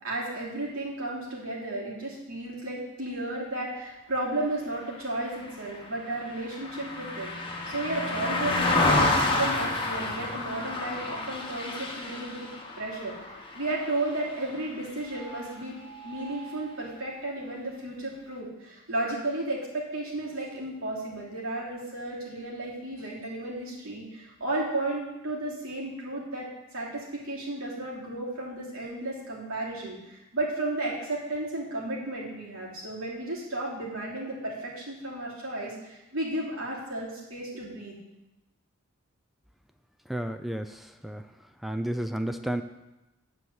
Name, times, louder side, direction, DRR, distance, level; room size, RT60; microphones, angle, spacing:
voice 1, 0.0-12.5 12.8-37.9, right 2 dB, 75° right, -5 dB, 3.1 m, -33 dB
Car passing by, 5.2-14.8 15.1-15.4, left 2 dB, 25° left, 1.3 m, -29 dB
voice 2, 40.1-41.2 41.6-42.6, right 1 dB, ahead, 8 dB, 0.4 m, -32 dB
10.0 x 4.8 x 7.9 m, 0.98 s
head